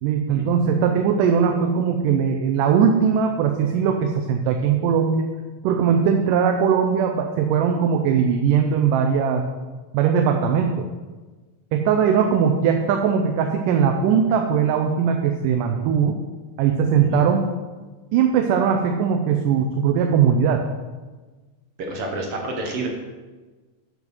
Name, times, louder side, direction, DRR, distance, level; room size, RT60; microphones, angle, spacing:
voice 1, 0.0-5.3 5.6-9.4 9.9-10.9 11.7-16.2 16.6-17.5 18.1-20.6, right 7 dB, 85° right, 4 dB, 2.2 m, -20 dB
voice 2, 21.8-22.9, right 2 dB, 55° right, 1 dB, 1.8 m, -29 dB
8.3 x 7.0 x 6.0 m, 1.3 s
omnidirectional pair, 3.7 m